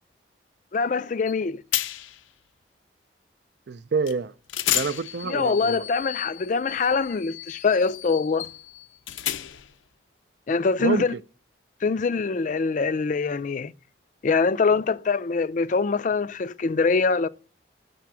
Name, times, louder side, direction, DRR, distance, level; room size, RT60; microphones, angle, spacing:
voice 1, 0.7-1.6 5.2-8.5 10.5-11.1 11.8-13.7 14.2-17.3, left 4 dB, 40° left, 0.4 m, -24 dB
sound 1, 1.3-1.4 1.7-2.2 4.1-4.2 4.5-9.8, left 12 dB, 90° left, 0.6 m, -32 dB
voice 2, 3.7-4.3 4.7-5.9 10.8-11.2, right 5 dB, 60° right, 0.4 m, -27 dB
6.7 x 5.8 x 7.3 m
head